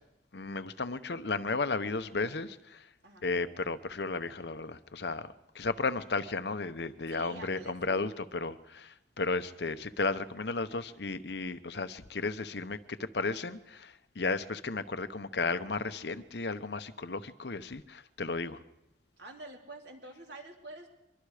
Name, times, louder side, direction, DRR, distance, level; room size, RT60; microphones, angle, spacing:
voice 1, 0.3-2.9 3.2-18.6, left 3 dB, 65° left, 12 dB, 0.9 m, -34 dB
voice 2, 7.1-8.2 19.2-20.9, right 2 dB, 65° right, 1 dB, 3.6 m, -48 dB
24.0 x 23.5 x 5.0 m, 0.89 s
head